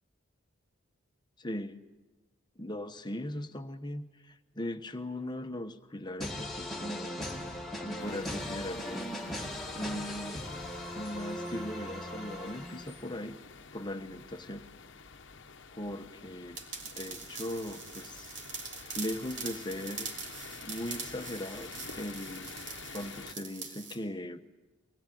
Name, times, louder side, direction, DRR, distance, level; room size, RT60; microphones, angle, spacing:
voice 1, 1.4-1.8 2.6-7.1 7.8-10.4 10.9-13.4 13.7-14.7 15.8-16.6 16.9-18.3 18.9-20.1 20.6-21.7 22.0-22.5 22.9-24.4, left 1 dB, 20° left, 8 dB, 1.0 m, -39 dB
sound 1, 6.2-13.2, left 1 dB, ahead, 2.0 m, -39 dB
sound 2, 8.0-23.3, left 5 dB, 60° left, 1.0 m, -49 dB
sound 3, 16.6-24.0, right 5 dB, 55° right, 3.1 m, -43 dB
24.5 x 20.5 x 9.2 m, 1.2 s
head